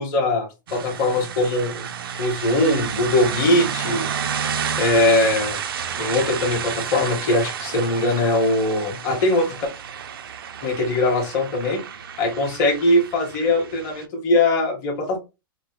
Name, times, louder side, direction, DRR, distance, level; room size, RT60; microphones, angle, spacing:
voice 1, 0.0-1.8 2.2-4.1 4.8-5.6 6.0-9.6 10.6-11.8 12.2-15.2, left 2 dB, 25° left, 0 dB, 0.9 m, -21 dB
sound 1, 0.7-14.1, right 8 dB, 85° right, 0.5 m, -30 dB
3.3 x 2.0 x 3.0 m, 0.25 s
supercardioid pair, 175°, 12 cm